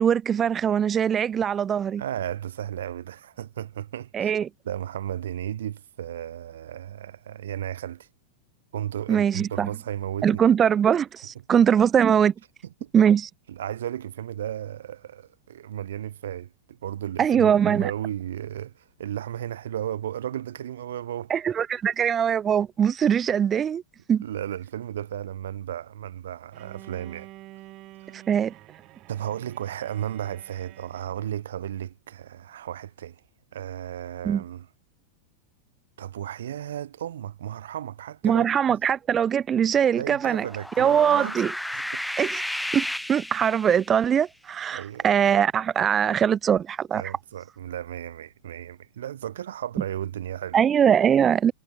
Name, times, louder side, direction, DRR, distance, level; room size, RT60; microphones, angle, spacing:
voice 1, 0.0-2.0 4.1-4.5 9.1-9.7 10.2-12.3 12.9-13.3 17.2-17.9 21.3-23.8 24.1-24.2 28.1-28.5 34.3-34.4 38.2-40.4 40.8-41.5 42.2-42.4 42.7-47.1 50.5-51.5, right 8 dB, 20° right, 2.1 m, -22 dB
voice 2, 2.0-4.3 4.6-8.1 8.7-10.4 12.8-12.9 13.5-21.3 24.2-27.3 29.1-33.2 33.5-34.7 36.0-38.8 39.9-41.3 41.7-41.8 44.7-45.1 46.9-50.6, right 11 dB, 90° right, 3.4 m, -34 dB
Bowed string instrument, 26.5-31.4, right 18 dB, 35° right, 5.3 m, -48 dB
sound 1, 40.3-44.0, left 1 dB, ahead, 0.7 m, -33 dB
supercardioid pair, 150°, 0 cm